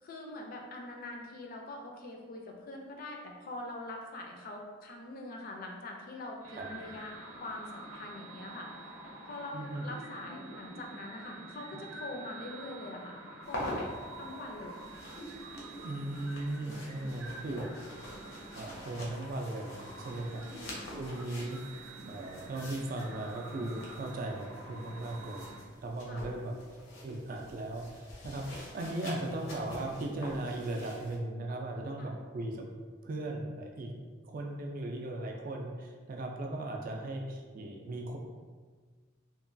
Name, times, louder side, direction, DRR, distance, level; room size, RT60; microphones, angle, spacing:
voice 1, 0.0-7.1 7.4-8.7 9.3-13.2 13.5-13.9 14.2-14.8 20.2-20.9 26.1-26.3 32.0-32.1, left 2 dB, 45° left, 1 dB, 0.4 m, -43 dB
sound 1, 6.4-25.6, right 2 dB, 80° right, 0.6 m, -47 dB
voice 2, 9.5-9.8 15.8-17.7 18.5-20.4 20.9-21.6 22.1-25.5 25.8-26.6 27.0-32.7 33.0-38.2, right 2 dB, 45° right, 2 dB, 0.3 m, -37 dB
sound 2, 13.4-31.2, left 1 dB, 85° left, 0.7 m, -46 dB
2.9 x 2.2 x 2.5 m, 1.5 s
head